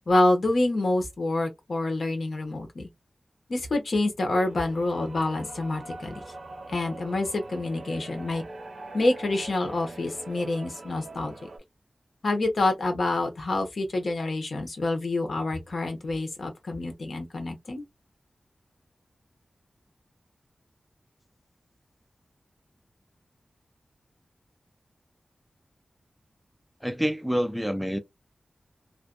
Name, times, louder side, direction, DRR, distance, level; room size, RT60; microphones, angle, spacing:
voice 1, 0.1-2.9 3.5-6.2 6.7-8.4 8.9-11.3 12.2-17.8, left 2 dB, 70° left, 0.9 m, -27 dB
sound 1, 4.3-11.6, right 2 dB, 65° right, 0.6 m, -43 dB
voice 2, 26.8-28.0, equal, ahead, 0.3 m, -27 dB
2.5 x 2.1 x 2.3 m
wide cardioid pair, 100°, 0 cm